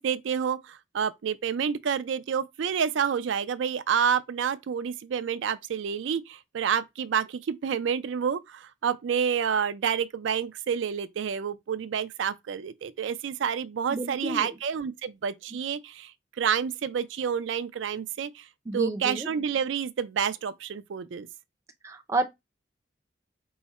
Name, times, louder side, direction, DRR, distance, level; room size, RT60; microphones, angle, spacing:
voice 1, 0.0-16.1 16.4-18.5 18.7-21.3, right 7 dB, 80° right, 0.4 m, -29 dB
voice 2, 13.9-14.5 18.7-19.3 21.8-22.3, right 2 dB, 15° right, 0.4 m, -30 dB
4.6 x 2.1 x 4.1 m
head